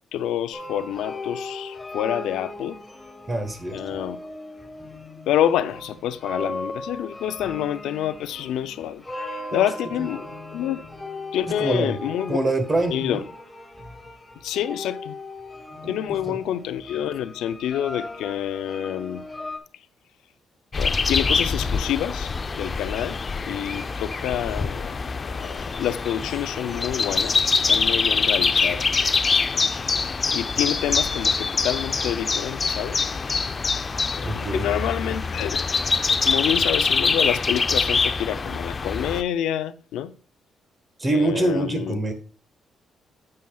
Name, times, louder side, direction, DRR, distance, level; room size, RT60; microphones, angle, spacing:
voice 1, 0.1-2.8 3.7-4.2 5.3-9.0 9.5-10.3 10.5-10.8 11.3-12.4 12.9-13.2 14.4-15.1 15.9-19.2 20.8-23.2 23.5-24.9 25.3-29.1 30.3-33.1 34.3-35.7 36.2-40.1 41.1-42.0, left 11 dB, 85° left, 0.5 m, -27 dB
sound 1, 0.5-19.6, left 2 dB, 15° left, 1.5 m, -38 dB
voice 2, 3.3-3.8 9.5-9.6 10.0-10.1 11.5-12.0 12.3-13.2 15.8-16.0 16.3-16.4 27.8-27.9 34.2-34.7 41.0-42.1, right 2 dB, 25° right, 1.4 m, -25 dB
sound 2, 20.7-39.2, left 4 dB, 35° left, 0.5 m, -24 dB
9.4 x 7.7 x 2.4 m
cardioid pair, 90°, 0 cm